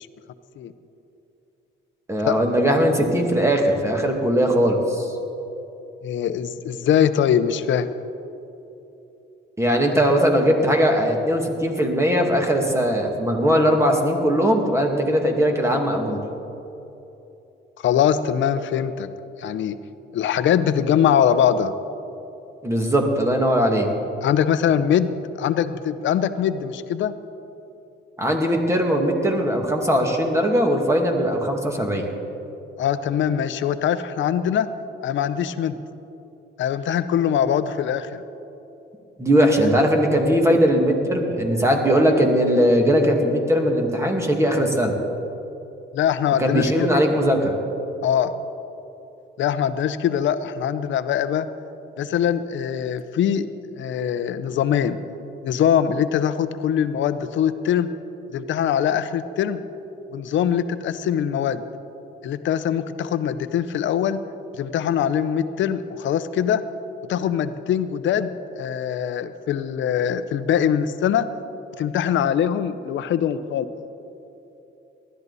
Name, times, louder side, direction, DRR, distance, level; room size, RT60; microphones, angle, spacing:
voice 1, 2.1-5.1 9.6-16.2 22.6-23.9 28.2-32.1 39.2-44.9 46.4-47.6, equal, 15° right, 2 dB, 2.2 m, -20 dB
voice 2, 6.0-7.9 17.8-19.1 19.4-19.8 20.1-21.7 24.2-27.1 32.8-34.7 35.0-35.8 36.6-38.2 45.9-47.0 48.0-48.3 49.4-51.5 52.0-53.5 53.8-55.0 55.4-57.9 58.3-59.6 60.1-61.6 62.2-64.2 64.5-66.6 67.1-71.3 71.8-73.7, left 9 dB, 70° left, 12 dB, 0.8 m, -22 dB
19.5 x 12.5 x 4.1 m, 3.0 s
cardioid pair, 90°, 20 cm